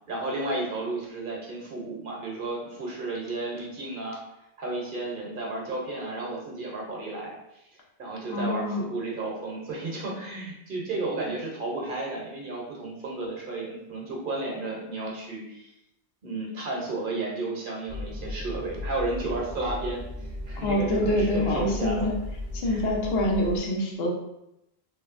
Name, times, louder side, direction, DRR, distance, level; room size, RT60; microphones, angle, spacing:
voice 1, 0.1-4.2 4.6-7.6 8.0-15.7 16.2-20.0 20.5-22.1 22.6-22.8, right 2 dB, 55° right, -2 dB, 0.9 m, -33 dB
voice 2, 8.3-8.9 20.6-22.1 22.5-24.1, left 1 dB, 75° left, -1 dB, 0.9 m, -26 dB
sound 1, 17.9-23.6, left 2 dB, 25° right, 0.6 m, -36 dB
3.0 x 2.6 x 2.5 m, 0.84 s
omnidirectional pair, 1.1 m